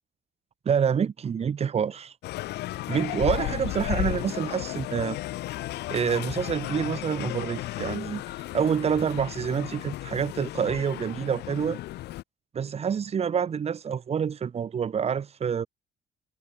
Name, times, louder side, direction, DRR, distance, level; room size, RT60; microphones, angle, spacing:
voice 1, 0.7-2.1 2.9-5.2 5.9-8.2 8.5-11.8 12.5-15.7, right 7 dB, 40° right, 2.1 m, -27 dB
sound 1, 2.2-12.2, left 16 dB, 80° left, 3.0 m, -34 dB
cardioid pair, 110°, 17 cm